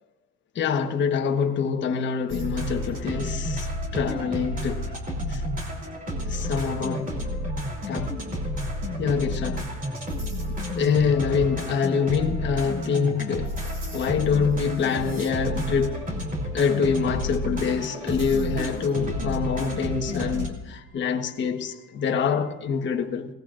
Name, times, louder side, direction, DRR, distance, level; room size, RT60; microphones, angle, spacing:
voice 1, 0.5-4.9 5.3-5.4 6.2-7.1 7.9-8.1 9.0-9.7 10.7-16.1 16.5-23.3, left 6 dB, 35° left, 1.2 m, -25 dB
sound 1, 2.3-20.5, equal, 25° right, 3.1 m, -30 dB
22.0 x 18.5 x 2.5 m
cardioid pair, 150°, 31 cm